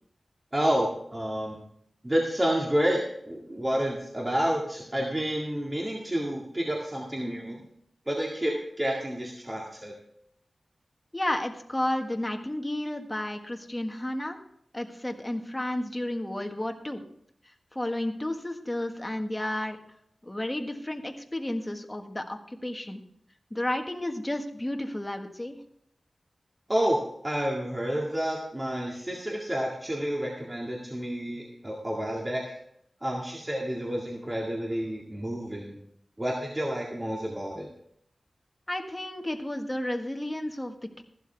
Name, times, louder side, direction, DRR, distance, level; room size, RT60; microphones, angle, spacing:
voice 1, 0.5-1.6 2.0-7.6 8.1-9.9 26.7-32.5 33.0-35.7 36.2-37.7, equal, 20° right, -2 dB, 2.0 m, -29 dB
voice 2, 11.1-14.4 14.7-17.0 17.7-19.8 20.2-23.0 23.5-25.6 38.7-41.0, left 1 dB, 15° left, 4 dB, 1.5 m, -32 dB
15.0 x 11.5 x 3.5 m, 0.71 s
wide cardioid pair, 80°, 0 cm